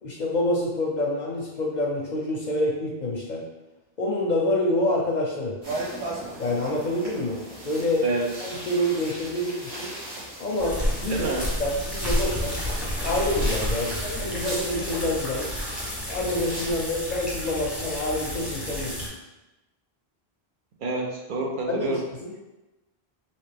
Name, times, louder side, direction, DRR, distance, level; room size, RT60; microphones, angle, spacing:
voice 1, 0.0-3.4 4.0-5.6 6.4-7.4 7.6-8.1 8.4-9.9 10.4-11.3 11.6-12.6 13.0-15.5 16.1-19.0 21.7-22.3, left 1 dB, 55° left, -2 dB, 0.6 m, -27 dB
sound 1, 5.6-16.7, right 1 dB, 85° right, 1.6 m, -37 dB
voice 2, 8.0-8.5 11.1-11.5 20.8-22.0, right 2 dB, 55° right, 1 dB, 0.8 m, -28 dB
sound 2, 10.6-19.1, equal, ahead, 0.8 m, -30 dB
3.3 x 2.8 x 3.3 m, 1.0 s
omnidirectional pair, 1.1 m